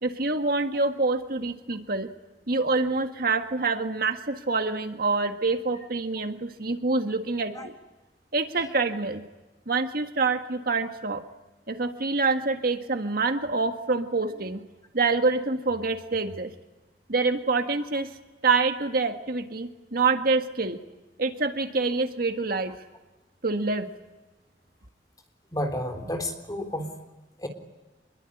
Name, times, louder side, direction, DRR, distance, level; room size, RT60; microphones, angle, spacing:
voice 1, 0.0-2.1 2.5-7.7 8.3-9.2 9.7-11.2 11.7-14.6 14.9-16.5 17.1-18.1 18.4-20.8 21.2-22.7 23.4-23.9, right 3 dB, 60° right, 7 dB, 1.7 m, -26 dB
voice 2, 25.5-27.0 27.4-27.5, left 1 dB, 20° left, 5 dB, 3.7 m, -31 dB
26.0 x 22.0 x 9.9 m, 1.1 s
head